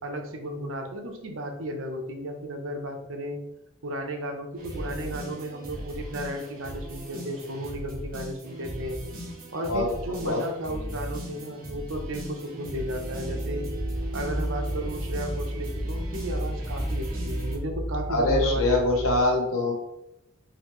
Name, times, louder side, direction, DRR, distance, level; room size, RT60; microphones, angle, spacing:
voice 1, 0.0-3.4 3.8-9.0 9.5-13.6 14.1-18.7 18.9-19.2, right 1 dB, 65° right, 4 dB, 0.7 m, -34 dB
sound 1, 4.6-17.6, equal, 45° right, 1.2 m, -37 dB
voice 2, 9.7-10.4 18.1-19.7, left 2 dB, 85° left, 0 dB, 1.0 m, -24 dB
sound 2, 13.2-19.2, equal, 55° left, 1.0 m, -32 dB
4.0 x 2.8 x 3.1 m, 0.87 s
head